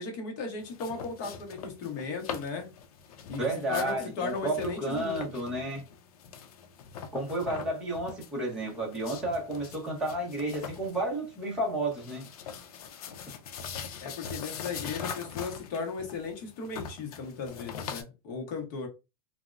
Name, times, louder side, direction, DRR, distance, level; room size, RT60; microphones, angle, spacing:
voice 1, 0.0-2.7 3.3-5.3 14.0-18.9, left 4 dB, 35° left, 0.8 m, -36 dB
sound 1, 0.6-18.0, left 6 dB, 65° left, 0.5 m, -42 dB
voice 2, 3.4-5.8 7.1-12.2, right 1 dB, 5° right, 0.6 m, -32 dB
3.4 x 2.0 x 2.4 m
supercardioid pair, 180°, 20 cm